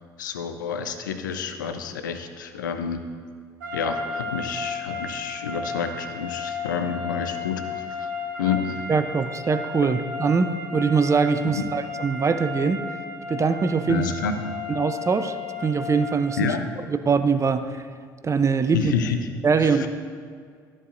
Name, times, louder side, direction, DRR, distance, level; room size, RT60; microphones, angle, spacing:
voice 1, 0.2-3.0 3.7-8.1 8.4-8.8 11.4-11.6 13.9-14.6 16.4-16.7 18.7-19.3 19.6-19.9, left 6 dB, 85° left, 8 dB, 0.5 m, -29 dB
sound 1, 3.6-16.4, left 4 dB, 85° right, 1.0 m, -34 dB
voice 2, 8.9-12.9 13.3-14.0 14.8-15.3 15.6-16.5 16.9-17.8 18.2-18.9 19.4-19.9, right 5 dB, 30° right, 10 dB, 0.6 m, -22 dB
13.0 x 7.4 x 2.6 m, 2.1 s
hypercardioid pair, 55°, 10 cm